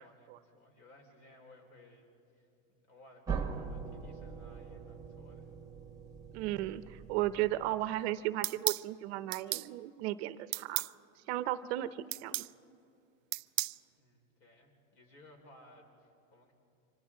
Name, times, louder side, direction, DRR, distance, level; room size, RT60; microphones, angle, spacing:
voice 1, 0.0-2.1 2.3-2.5 2.7-5.5 14.0-16.5, left 1 dB, 50° left, 2 dB, 4.8 m, -59 dB
sound 1, 3.3-8.0, right 6 dB, 10° right, 1.3 m, -42 dB
voice 2, 6.3-10.8 11.3-12.4, right 15 dB, 55° right, 13 dB, 0.7 m, -35 dB
sound 2, 8.4-8.9 9.3-9.7 10.5-10.9 12.1-12.5 13.3-13.8, right 19 dB, 90° right, 0.5 m, -33 dB
29.0 x 25.0 x 3.8 m, 2.6 s
supercardioid pair, 145°, 39 cm